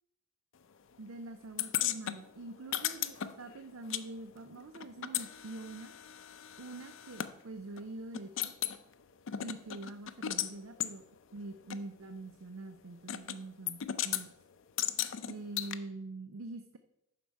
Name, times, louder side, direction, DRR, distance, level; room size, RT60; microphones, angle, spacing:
voice 1, 1.0-5.9 6.6-8.5 9.4-11.0 11.3-14.3 15.3-16.8, right 2 dB, 80° right, 9 dB, 0.5 m, -45 dB
sound 1, 1.6-4.1 4.3-7.3 7.8-7.9 8.1-8.8 9.3-10.5 10.8-10.9 11.7-11.8 13.1-13.4 13.7-14.2 14.8-15.8, left 11 dB, 65° left, 0.5 m, -36 dB
9.5 x 6.0 x 4.6 m, 0.86 s
head